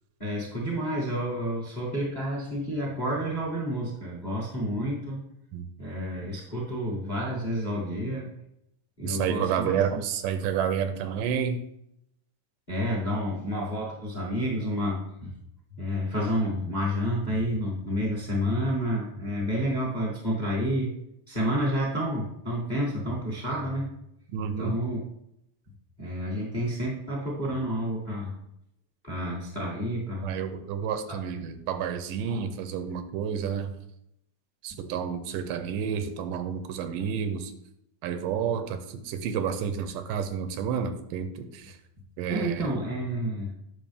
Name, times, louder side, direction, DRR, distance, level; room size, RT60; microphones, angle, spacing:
voice 1, 0.2-5.2 5.8-8.3 9.0-9.8 12.7-15.3 15.8-20.9 21.3-23.9 24.6-25.0 26.0-28.3 29.0-30.3 31.1-31.2 42.3-43.5, equal, 20° left, -4 dB, 1.1 m, -29 dB
voice 2, 9.0-11.6 24.3-24.8 30.2-33.7 34.6-37.5 38.0-41.8 42.2-42.7, right 7 dB, 85° right, 9 dB, 2.2 m, -30 dB
9.4 x 5.8 x 3.5 m, 0.80 s
omnidirectional pair, 3.9 m